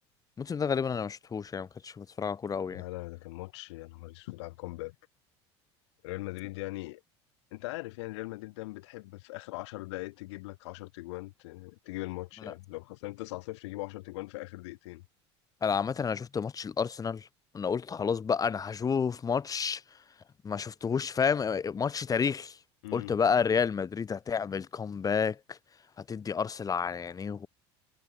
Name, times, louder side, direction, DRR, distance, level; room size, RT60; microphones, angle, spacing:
voice 1, 0.4-2.8 15.6-17.3 17.5-19.8 20.4-22.6 22.9-25.6 26.0-27.5, left 6 dB, 25° left, 0.8 m, -30 dB
voice 2, 2.7-5.0 6.0-7.0 7.5-15.0 22.8-23.2, left 21 dB, 75° left, 2.0 m, -40 dB
hypercardioid pair, 80°, 15 cm